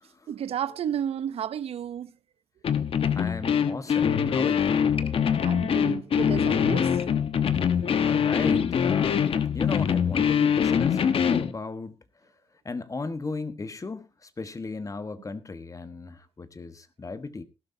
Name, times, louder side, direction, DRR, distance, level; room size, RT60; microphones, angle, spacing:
voice 1, 0.3-2.1 5.3-7.0, right 9 dB, 75° right, 0.7 m, -32 dB
sound 1, 2.6-11.5, left 7 dB, 65° left, 1.1 m, -23 dB
voice 2, 3.1-4.9 8.0-12.0 12.6-17.4, left 3 dB, 30° left, 1.3 m, -36 dB
18.5 x 12.0 x 2.7 m
cardioid pair, 70°, 10 cm